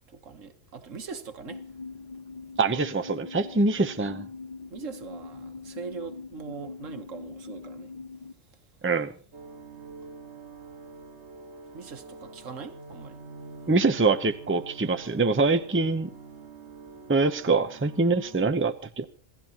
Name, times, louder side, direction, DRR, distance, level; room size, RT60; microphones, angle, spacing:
voice 1, 0.2-1.6 4.7-7.9 11.7-13.2, right 5 dB, 85° right, 1.7 m, -41 dB
sound 1, 1.5-8.3, left 4 dB, 35° left, 1.1 m, -42 dB
voice 2, 2.6-4.3 8.8-9.1 13.7-16.1 17.1-19.0, right 3 dB, 10° right, 0.7 m, -24 dB
sound 2, 9.3-18.5, right 3 dB, 60° right, 1.9 m, -46 dB
27.0 x 15.5 x 3.0 m
omnidirectional pair, 1.3 m